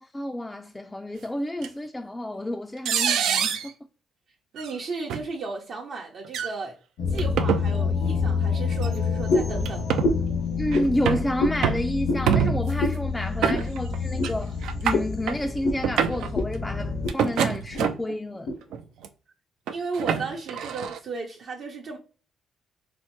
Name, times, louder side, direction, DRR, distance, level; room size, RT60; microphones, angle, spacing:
voice 1, 0.0-3.7 10.6-18.5, left 1 dB, 10° left, 0.3 m, -30 dB
sound 1, 1.6-1.7 2.8-3.7 4.6-4.7 5.1-5.2 6.2-6.5 7.2-7.6 8.8-8.9 9.6-10.1 10.7-11.3 11.6-11.9 12.3-12.8 13.4-14.0 14.2-14.3 14.6-15.4 15.8-16.3 17.1-18.1 18.7-19.1 19.7-21.0, right 8 dB, 85° right, 0.4 m, -25 dB
voice 2, 4.5-6.8 7.1-9.9 19.7-22.0, right 4 dB, 60° right, 0.7 m, -34 dB
sound 2, 7.0-17.1, left 5 dB, 85° left, 1.2 m, -28 dB
sound 3, 9.3-9.6 10.0-10.3 10.7-10.9 11.4-11.6 12.0-12.3 12.8-13.0 13.5-13.7 14.2-14.3 14.9-15.1 15.6-15.8 16.3-16.5 16.8-17.2 17.7-17.8 18.5-18.6, left 2 dB, 65° left, 0.6 m, -25 dB
4.2 x 2.1 x 2.9 m
cardioid pair, 90°, 0 cm